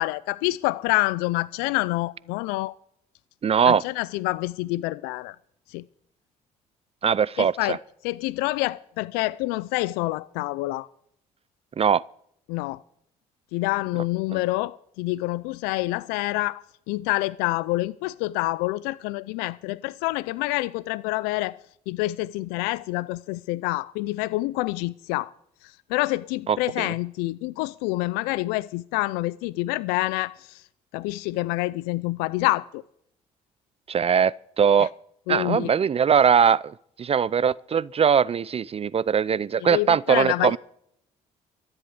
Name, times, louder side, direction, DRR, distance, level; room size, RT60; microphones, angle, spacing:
voice 1, 0.0-2.7 3.7-5.4 5.7-5.8 7.4-7.8 8.0-10.9 12.5-12.8 13.5-21.6 21.9-25.3 25.9-30.6 30.9-32.8 34.8-34.9 35.3-35.7 39.6-40.6, left 20 dB, 90° left, 0.5 m, -27 dB
voice 2, 3.4-3.8 7.0-7.8 11.8-12.0 26.5-26.9 33.9-34.9 35.3-40.6, right 7 dB, 40° right, 0.5 m, -21 dB
13.5 x 7.9 x 9.4 m
supercardioid pair, 60°, 16 cm